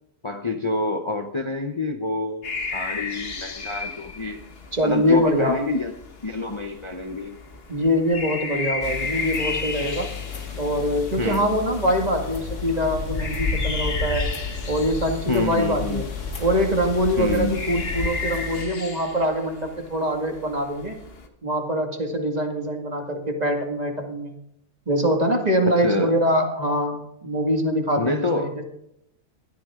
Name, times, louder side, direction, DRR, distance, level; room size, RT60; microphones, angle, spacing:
voice 1, 0.2-4.4 4.8-5.9 6.2-7.4 11.2-11.6 15.3-16.0 17.2-17.6 25.7-26.2 28.0-28.6, left 3 dB, 30° left, 5 dB, 0.8 m, -27 dB
sound 1, 2.4-21.3, left 4 dB, 55° left, 1.6 m, -35 dB
voice 2, 4.7-5.6 7.7-10.1 10.5-14.3 14.7-16.0 16.4-21.0 21.4-24.3 24.9-28.6, equal, 35° right, 3 dB, 2.1 m, -24 dB
sound 2, 8.8-18.6, left 4 dB, 90° left, 2.0 m, -31 dB
19.5 x 13.5 x 3.7 m, 0.76 s
omnidirectional pair, 1.2 m